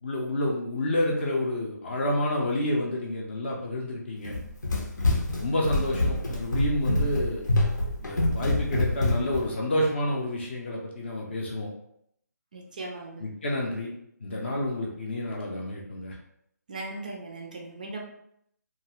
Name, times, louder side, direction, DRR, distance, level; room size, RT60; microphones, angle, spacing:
voice 1, 0.0-4.4 5.4-7.5 8.0-11.7 13.2-13.9 14.2-16.2, left 1 dB, 40° left, -2 dB, 0.5 m, -29 dB
Run, 4.2-9.5, left 2 dB, 85° left, 0.8 m, -26 dB
voice 2, 12.5-13.2 16.7-18.0, right 2 dB, 25° right, 0 dB, 0.3 m, -38 dB
2.5 x 2.3 x 2.9 m, 0.72 s
figure-of-eight pair, 165°, 10 cm